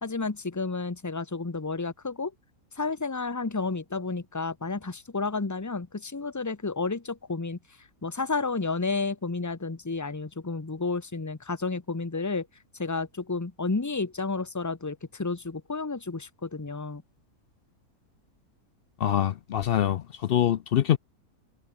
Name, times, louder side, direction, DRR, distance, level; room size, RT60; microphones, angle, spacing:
voice 1, 0.0-2.3 2.7-7.6 8.0-12.5 12.8-17.0, left 3 dB, 15° left, 0.8 m, -31 dB
voice 2, 19.0-21.0, left 10 dB, 85° left, 0.5 m, -24 dB
omnidirectional pair, 1.6 m